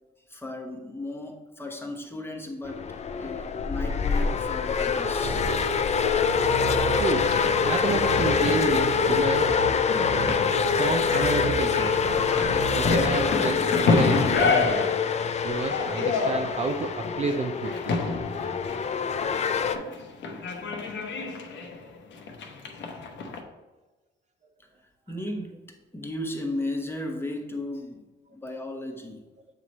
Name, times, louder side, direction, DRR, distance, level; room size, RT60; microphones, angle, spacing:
voice 1, 0.3-2.9 3.2-5.4 25.1-25.6 25.9-28.0 28.3-29.2, left 1 dB, 10° left, 2 dB, 1.0 m, -35 dB
sound 1, 2.6-19.8, left 6 dB, 35° left, 0.4 m, -25 dB
sound 2, 5.2-13.3, right 3 dB, 85° right, 1.3 m, -34 dB
voice 2, 6.7-9.6 10.7-12.1 12.8-14.9 15.4-18.0, right 4 dB, 35° right, 5 dB, 0.5 m, -30 dB
sound 3, 7.2-23.4, left 4 dB, 70° left, 0.8 m, -29 dB
7.4 x 3.1 x 4.1 m, 1.2 s
cardioid pair, 90°, 20 cm